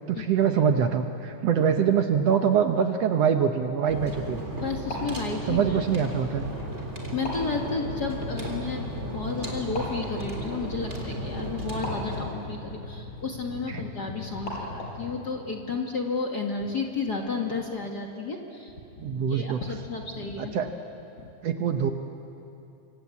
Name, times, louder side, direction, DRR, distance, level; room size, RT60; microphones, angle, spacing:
voice 1, 0.1-4.4 5.5-6.4 13.7-13.8 19.0-19.6 20.4-20.7 21.4-21.9, right 7 dB, 65° right, 6 dB, 1.9 m, -24 dB
sound 1, 3.9-12.2, right 1 dB, 20° right, 3.7 m, -35 dB
sound 2, 4.6-15.2, left 1 dB, 65° left, 6.3 m, -42 dB
voice 2, 4.6-5.6 6.9-20.7 21.2-21.3, left 4 dB, 40° left, 1 dB, 1.9 m, -32 dB
sound 3, 7.5-15.4, left 3 dB, 20° left, 6.5 m, -42 dB
27.0 x 25.0 x 8.4 m, 2.8 s
omnidirectional pair, 3.5 m